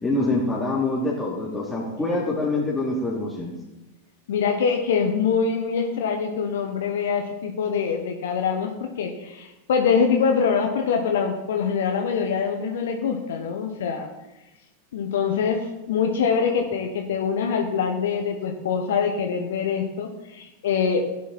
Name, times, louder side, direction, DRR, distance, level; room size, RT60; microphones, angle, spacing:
voice 1, 0.0-3.5, left 2 dB, 10° left, -5 dB, 3.1 m, -25 dB
voice 2, 4.3-14.1 14.9-21.0, left 6 dB, 60° left, 3 dB, 1.4 m, -24 dB
16.5 x 10.0 x 4.4 m, 0.98 s
figure-of-eight pair, 90°, 0 cm